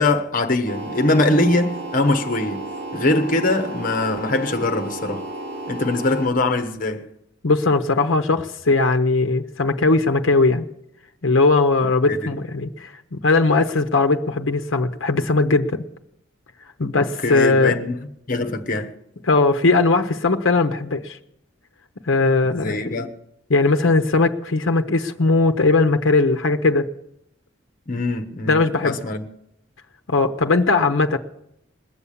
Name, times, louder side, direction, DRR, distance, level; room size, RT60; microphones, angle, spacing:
voice 1, 0.0-5.3 5.7-7.1 12.1-12.3 17.0-18.0 18.3-18.9 22.4-23.1 27.9-29.3, left 2 dB, 45° left, 1.3 m, -22 dB
sound 1, 0.7-6.3, right 2 dB, 60° right, 2.5 m, -33 dB
voice 2, 7.4-10.6 11.2-15.8 16.8-17.8 19.2-21.2 22.1-22.9 23.5-26.9 28.5-29.0 30.1-31.2, left 3 dB, 85° left, 0.8 m, -19 dB
20.5 x 7.0 x 8.5 m
head